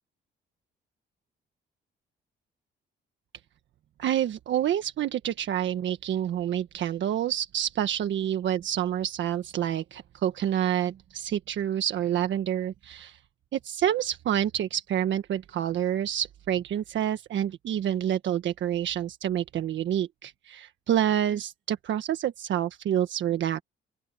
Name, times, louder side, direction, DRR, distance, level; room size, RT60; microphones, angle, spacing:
voice 1, 4.0-13.2 13.5-23.6, right 10 dB, 70° right, 1.5 m, -28 dB
open air
cardioid pair, 90°, 20 cm